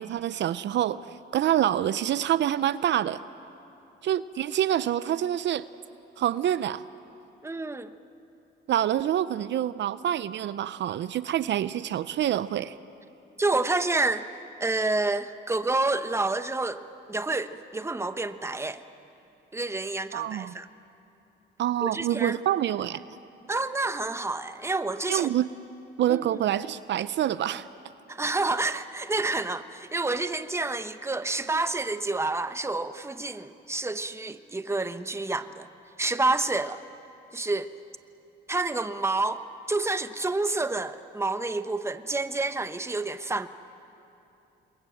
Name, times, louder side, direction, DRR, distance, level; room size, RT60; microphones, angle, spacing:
voice 1, 0.0-3.2 4.0-5.7 6.2-6.8 8.7-12.7 20.1-20.5 21.6-23.0 25.1-25.5 26.0-27.7, right 11 dB, 65° right, 15 dB, 0.6 m, -26 dB
voice 2, 7.4-7.9 13.4-14.3 14.6-18.8 19.5-20.7 21.8-22.4 23.5-25.3 26.1-26.4 28.1-35.7 36.0-36.8 37.3-37.7 38.5-43.5, right 2 dB, 15° right, 11 dB, 0.9 m, -29 dB
28.0 x 22.0 x 7.8 m, 2.9 s
cardioid pair, 90°, 20 cm